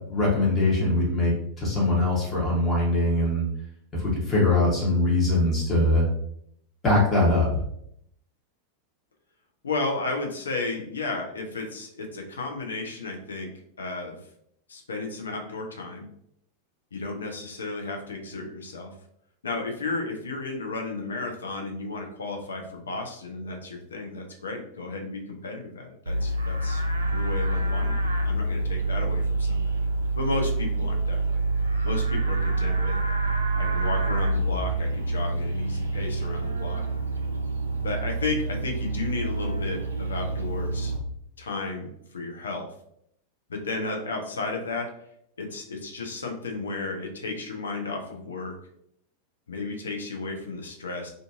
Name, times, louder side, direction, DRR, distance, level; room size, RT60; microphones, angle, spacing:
voice 1, 0.1-3.5 3.9-6.1 6.8-7.5, left 2 dB, 20° left, -4 dB, 1.0 m, -22 dB
voice 2, 9.6-14.2 14.7-16.1 16.9-18.9 19.4-29.8 30.2-31.4 31.8-33.0 33.5-36.9 37.8-40.9 41.4-42.7 43.5-45.0 45.4-48.6 49.5-51.1, left 3 dB, 70° left, 3 dB, 0.5 m, -33 dB
Livestock farm animals working animals, 26.1-41.0, right 2 dB, 75° right, 0.4 m, -27 dB
2.5 x 2.4 x 2.5 m, 0.72 s
figure-of-eight pair, 90°, 0 cm